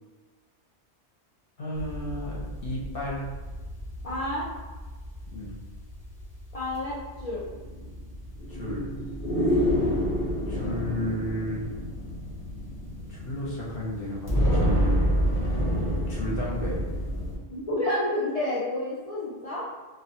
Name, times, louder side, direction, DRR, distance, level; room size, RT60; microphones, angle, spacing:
voice 1, 1.6-3.3 5.3-5.6 8.5-8.9 10.5-11.7 13.1-15.1 16.1-16.8, left 1 dB, 60° left, -5 dB, 0.7 m, -33 dB
sound 1, 1.7-17.4, equal, 25° left, 0.6 m, -29 dB
voice 2, 4.0-4.5 6.5-7.5 17.5-19.7, left 1 dB, 75° left, -7 dB, 0.3 m, -29 dB
2.3 x 2.1 x 2.7 m, 1.3 s
omnidirectional pair, 1.2 m